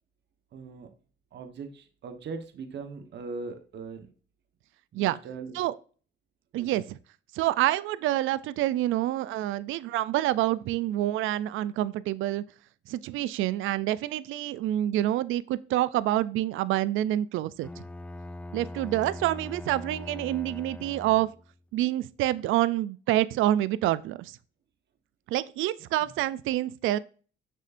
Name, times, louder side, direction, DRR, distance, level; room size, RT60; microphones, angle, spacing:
voice 1, 0.5-0.9 1.3-4.1 4.9-5.6 6.5-6.8 26.0-26.2, right 4 dB, 60° right, 1.1 m, -40 dB
voice 2, 6.5-7.0 7.3-12.4 12.9-17.8 18.5-21.3 21.7-24.4 25.3-27.0, right 14 dB, 85° right, 0.4 m, -27 dB
Bowed string instrument, 17.6-21.6, left 2 dB, 5° left, 0.3 m, -41 dB
6.7 x 6.2 x 2.5 m
cardioid pair, 90°, 20 cm